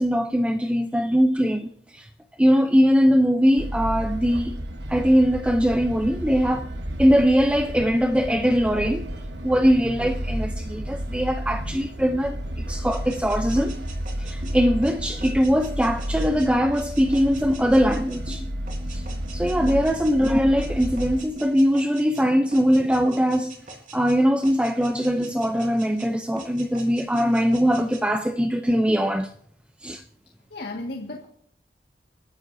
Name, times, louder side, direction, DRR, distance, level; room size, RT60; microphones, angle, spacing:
voice 1, 0.0-2.1 2.4-4.6 4.9-6.7 7.0-9.1 9.4-12.4 12.7-13.7 14.2-18.4 18.9-19.0 19.3-23.5 23.9-29.3 29.8-30.0, equal, 5° right, 0.5 m, -21 dB
sound 1, 3.6-21.2, equal, 85° right, 1.3 m, -32 dB
sound 2, 12.9-22.3 22.5-24.2 24.4-26.1 26.4-28.0, right 1 dB, 50° right, 4.1 m, -41 dB
voice 2, 30.5-31.3, left 2 dB, 75° left, 1.8 m, -34 dB
29.5 x 12.0 x 2.7 m
head